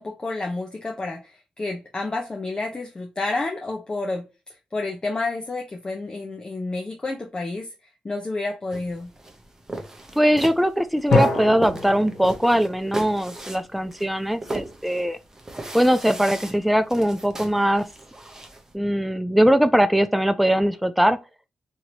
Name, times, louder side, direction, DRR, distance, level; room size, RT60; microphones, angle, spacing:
voice 1, 0.0-4.2 4.7-7.7 8.0-9.1, left 2 dB, 30° left, 0.7 m, -30 dB
sound 1, 8.7-18.7, right 2 dB, 20° right, 0.8 m, -37 dB
voice 2, 10.2-15.2 15.7-17.9 18.7-21.2, equal, ahead, 0.3 m, -21 dB
sound 2, 11.1-13.9, left 3 dB, 65° left, 1.2 m, -27 dB
2.8 x 2.7 x 2.8 m
cardioid pair, 60°, 3 cm